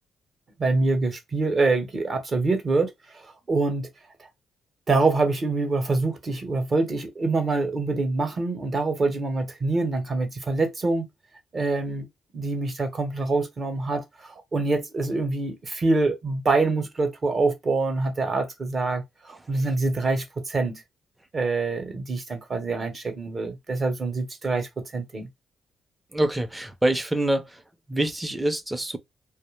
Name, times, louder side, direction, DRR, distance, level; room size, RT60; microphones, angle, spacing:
voice 1, 0.6-3.9 4.2-4.3 4.9-11.1 11.5-12.1 12.3-20.8 21.3-25.3, right 3 dB, 35° right, 0.8 m, -25 dB
voice 2, 26.1-27.4 27.9-29.0, right 1 dB, 10° right, 0.5 m, -25 dB
2.3 x 2.1 x 3.1 m
cardioid pair, 90°, 0 cm